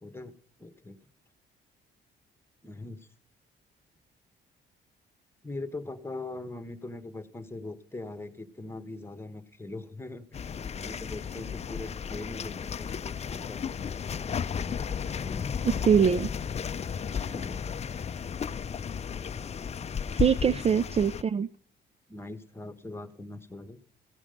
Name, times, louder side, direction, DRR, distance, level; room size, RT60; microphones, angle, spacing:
voice 1, 0.0-1.0 2.6-3.1 5.4-13.7 15.2-15.6 17.2-17.8 20.4-20.6 22.1-23.8, left 2 dB, 10° left, 9 dB, 1.2 m, -41 dB
sound 1, 10.3-21.2, left 7 dB, 35° left, 0.5 m, -34 dB
voice 2, 15.6-16.3 20.1-21.5, right 7 dB, 30° right, 16 dB, 0.4 m, -23 dB
16.0 x 7.2 x 5.1 m, 0.62 s
cardioid pair, 90°, 20 cm